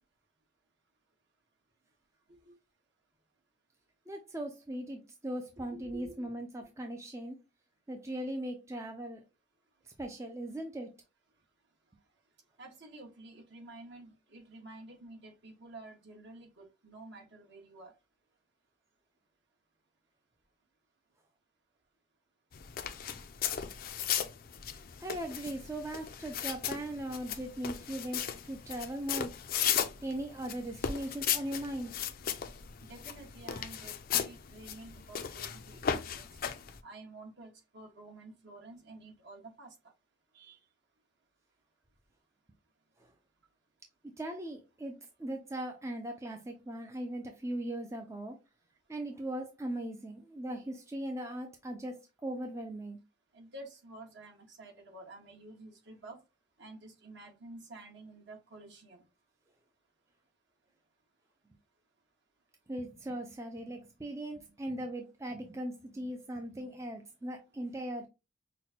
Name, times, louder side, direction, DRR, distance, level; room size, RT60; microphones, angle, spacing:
voice 1, 4.1-7.4 7.9-9.2 10.0-10.9 25.0-29.4 30.0-31.9 44.2-48.4 48.9-53.0 62.7-68.1, right 1 dB, 15° right, 0.4 m, -39 dB
voice 2, 5.7-6.3 12.6-17.9 32.8-36.2 36.8-39.7 40.3-40.6 53.3-56.2 56.6-59.0, right 2 dB, 60° right, 1.4 m, -50 dB
sound 1, 22.5-36.8, left 8 dB, 45° left, 0.4 m, -36 dB
5.8 x 2.2 x 2.8 m
head